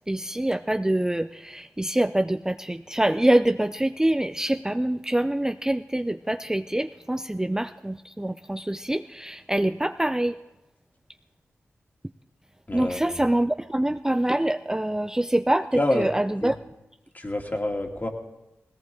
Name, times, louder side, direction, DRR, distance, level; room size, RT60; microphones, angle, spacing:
voice 1, 0.1-10.4 12.7-16.6, right 1 dB, 10° right, 9 dB, 0.4 m, -25 dB
voice 2, 12.7-13.3 15.8-16.1 16.4-16.5 17.1-18.1, left 1 dB, 30° left, 2 dB, 2.3 m, -27 dB
18.5 x 17.5 x 3.7 m, 1.0 s
cardioid pair, 40°, 5 cm